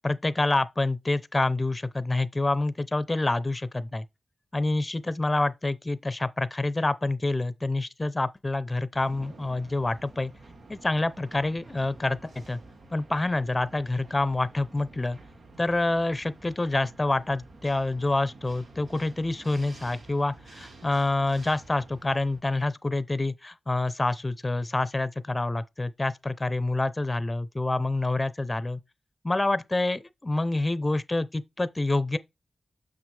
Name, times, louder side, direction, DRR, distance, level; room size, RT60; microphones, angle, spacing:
voice 1, 0.0-4.0 4.5-10.3 10.7-12.6 12.9-15.2 15.6-28.8 29.2-32.2, left 2 dB, 25° left, 0.6 m, -27 dB
sound 1, 8.9-22.4, right 2 dB, 75° right, 1.5 m, -50 dB
7.1 x 6.1 x 3.3 m
cardioid pair, 60°, 0 cm